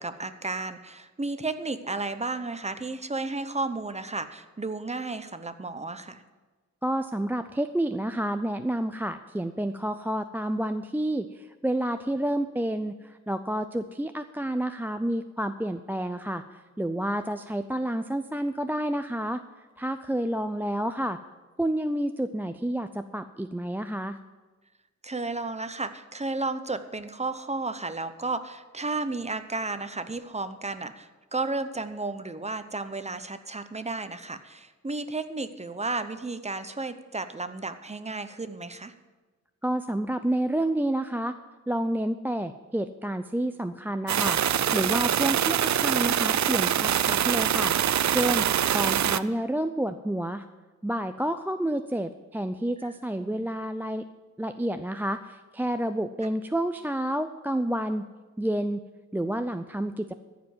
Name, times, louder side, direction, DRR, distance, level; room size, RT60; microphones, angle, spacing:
voice 1, 0.0-6.2 25.0-38.9 53.2-53.4, right 3 dB, 20° right, 10 dB, 0.8 m, -33 dB
voice 2, 6.8-19.4 19.8-21.2 21.6-24.2 39.6-41.4 41.7-47.7 48.0-48.5 48.7-50.5 50.8-54.1 54.4-58.1 58.4-58.8 59.1-60.1, right 1 dB, 5° right, 8 dB, 0.4 m, -29 dB
sound 1, 44.1-49.2, right 10 dB, 70° right, 0.5 m, -24 dB
14.0 x 5.1 x 9.2 m, 1.2 s
wide cardioid pair, 85°, 29 cm